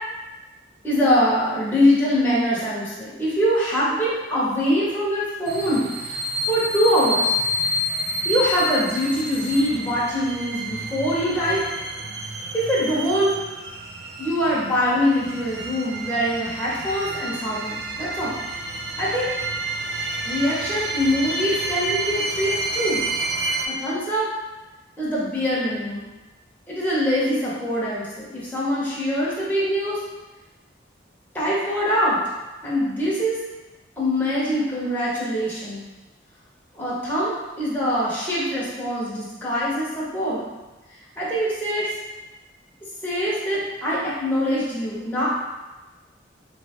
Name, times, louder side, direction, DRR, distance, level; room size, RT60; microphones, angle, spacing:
voice 1, 0.8-6.2 6.5-7.3 8.2-11.6 12.5-13.4 14.2-18.3 19.0-19.3 20.3-23.0 23.7-24.3 25.0-26.1 26.7-30.0 31.3-32.2 32.6-33.4 34.0-35.8 36.7-40.4 41.2-41.9 43.0-45.3, equal, 10° left, -9 dB, 0.9 m, -23 dB
sound 1, 5.5-23.7, right 1 dB, 60° right, 0.4 m, -29 dB
4.1 x 3.2 x 2.9 m, 1.1 s
head